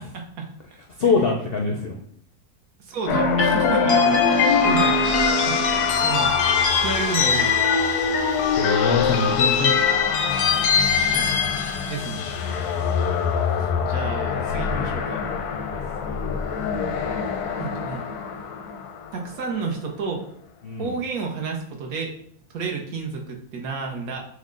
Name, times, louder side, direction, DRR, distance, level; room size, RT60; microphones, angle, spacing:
voice 1, 0.1-0.5 1.0-1.3 2.8-5.0 5.4-6.4 6.7-7.6 11.1-11.4 11.9-12.3 13.4-15.2 17.6-18.0 19.1-20.3 20.8-22.1 22.5-24.3, right 4 dB, 70° right, 1 dB, 1.3 m, -31 dB
voice 2, 1.0-2.0 8.6-10.0 15.7-16.2 20.6-20.9, left 4 dB, 65° left, 0 dB, 0.5 m, -24 dB
sound 1, 3.1-19.3, left 5 dB, 85° left, 1.2 m, -22 dB
6.4 x 2.2 x 3.7 m, 0.64 s
omnidirectional pair, 1.6 m